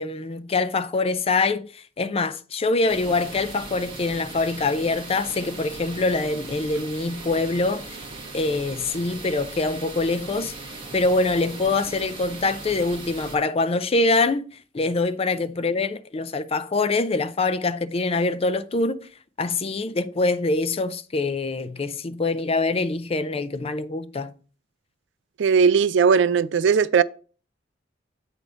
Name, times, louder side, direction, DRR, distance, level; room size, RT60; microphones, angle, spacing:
voice 1, 0.0-8.0 8.3-10.5 10.9-19.1 19.4-24.4, left 3 dB, 30° left, 0.5 m, -24 dB
sound 1, 2.9-13.4, right 3 dB, 30° right, 1.6 m, -39 dB
voice 2, 25.4-27.0, right 6 dB, 70° right, 0.4 m, -18 dB
8.2 x 3.4 x 5.1 m
head